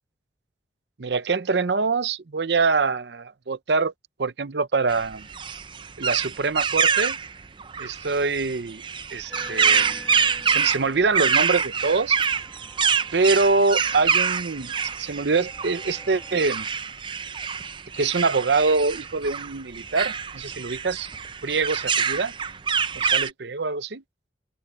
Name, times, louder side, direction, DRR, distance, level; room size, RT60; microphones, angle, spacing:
voice 1, 1.0-3.9 4.2-5.3 6.0-7.2 7.8-8.8 9.1-10.0 10.5-12.2 13.1-14.7 15.0-16.7 17.9-21.1 21.4-22.3 23.1-24.0, right 4 dB, 80° right, 0.7 m, -24 dB
sound 1, 4.9-23.3, right 6 dB, 25° right, 0.5 m, -26 dB
sound 2, 9.3-16.5, equal, ahead, 1.9 m, -46 dB
open air
head